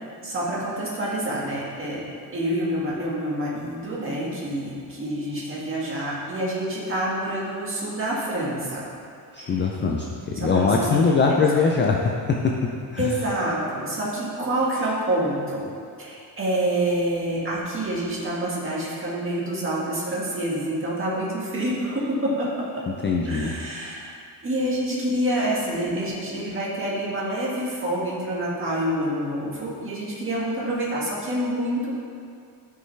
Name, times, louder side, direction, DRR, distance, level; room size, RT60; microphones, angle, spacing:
voice 1, 0.2-2.0 2.3-8.9 9.4-9.5 10.4-11.3 13.0-15.7 16.0-22.8 23.3-24.2 24.4-32.0, right 1 dB, 30° right, -6 dB, 1.8 m, -27 dB
voice 2, 9.3-13.2 23.0-23.6, left 4 dB, 25° left, 0 dB, 0.4 m, -22 dB
13.0 x 5.4 x 3.3 m, 2.3 s
cardioid pair, 175°, 45 cm